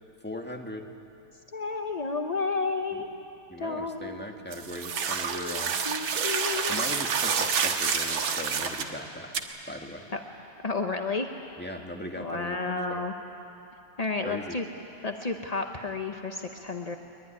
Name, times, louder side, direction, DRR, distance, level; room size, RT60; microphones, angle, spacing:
voice 1, 0.2-0.9 2.9-3.0 3.5-5.7 6.7-9.3 9.7-10.1 11.6-12.6 12.9-13.1 14.2-14.6, left 1 dB, 5° left, 2 dB, 1.3 m, -39 dB
voice 2, 1.5-3.1 3.6-4.2 5.3-6.8 10.1-10.2 10.6-11.3 12.2-13.1 14.0-14.6 15.0-17.0, left 3 dB, 45° left, 4 dB, 0.5 m, -31 dB
sound 1, 4.5-8.9 9.3-9.4, right 6 dB, 85° right, 2.1 m, -28 dB
23.0 x 22.0 x 9.9 m, 2.8 s
omnidirectional pair, 2.1 m